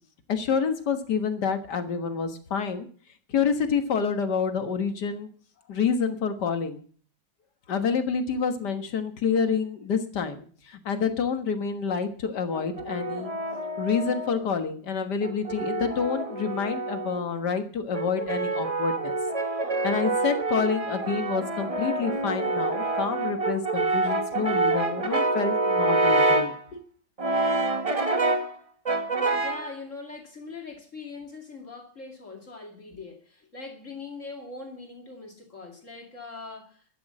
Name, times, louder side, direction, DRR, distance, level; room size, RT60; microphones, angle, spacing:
voice 1, 0.3-2.9 3.3-5.3 5.7-6.8 7.7-13.3 13.8-19.1 19.8-26.8, left 6 dB, 60° left, 8 dB, 2.0 m, -28 dB
Brass instrument, 12.5-14.5 15.2-17.3 17.9-26.6 27.2-28.5 28.9-29.7, right 2 dB, 25° right, 0.9 m, -27 dB
voice 2, 29.3-37.0, left 3 dB, 40° left, 2 dB, 2.7 m, -41 dB
12.5 x 9.7 x 7.6 m, 0.44 s
omnidirectional pair, 2.1 m